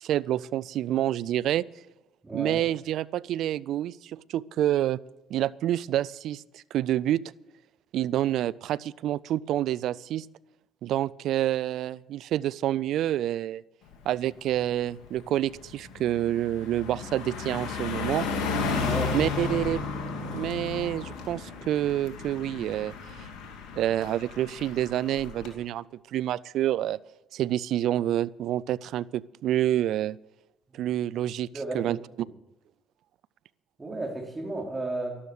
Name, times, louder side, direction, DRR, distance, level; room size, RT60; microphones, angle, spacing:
voice 1, 0.0-1.6 2.3-5.0 5.3-7.2 7.9-10.3 10.8-13.6 14.1-18.3 19.1-19.8 20.3-23.3 23.7-27.0 27.3-30.2 30.7-31.5 31.7-32.0, right 12 dB, 65° right, 20 dB, 0.4 m, -28 dB
voice 2, 2.2-2.6 18.7-19.6 30.7-30.8 31.5-32.3 33.8-35.1, right 2 dB, 25° right, 0 dB, 4.4 m, -34 dB
Car passing by, 13.9-14.2 14.6-25.5, left 5 dB, 70° left, 2.6 m, -34 dB
13.0 x 12.0 x 6.6 m, 0.95 s
hypercardioid pair, 55°, 0 cm